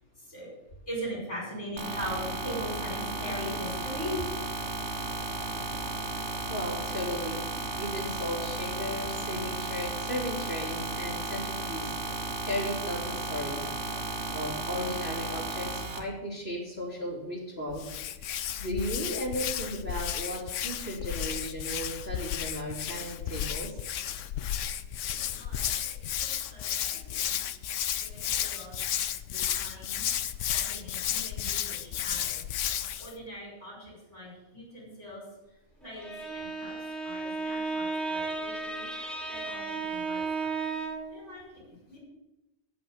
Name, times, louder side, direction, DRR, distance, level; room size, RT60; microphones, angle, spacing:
voice 1, 0.9-4.2 25.4-27.4 28.0-28.8 29.3-30.0 30.5-32.4 33.0-35.2 35.8-36.1 36.3-36.7 37.0-38.9 39.3-40.5 41.1-41.4 41.9-42.0, equal, 75° left, -6 dB, 6.1 m, -40 dB
sound 1, 1.8-16.0, right 2 dB, 60° right, 1.6 m, -34 dB
voice 2, 6.5-7.4 7.8-11.9 12.4-13.7 14.3-17.8 18.6-23.7 38.2-38.3, equal, 55° left, -7 dB, 3.4 m, -35 dB
Hands, 17.7-33.1, left 10 dB, 90° left, 1.0 m, -33 dB
Bowed string instrument, 35.8-41.2, right 4 dB, ahead, 1.4 m, -34 dB
8.7 x 7.9 x 8.8 m, 0.95 s
omnidirectional pair, 1.3 m